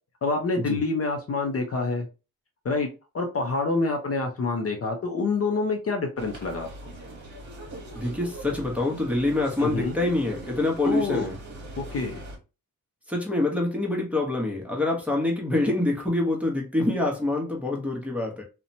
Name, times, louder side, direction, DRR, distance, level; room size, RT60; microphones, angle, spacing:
voice 1, 0.2-2.1 2.6-2.9 3.1-6.7 9.6-10.0 10.8-11.3 11.9-12.2, left 3 dB, 40° left, 0.5 m, -27 dB
sound 1, 6.2-12.4, right 2 dB, 50° right, 1.0 m, -41 dB
voice 2, 7.9-11.4 13.1-18.4, left 2 dB, 5° right, 0.8 m, -26 dB
2.8 x 2.1 x 2.6 m
wide cardioid pair, 115°, 37 cm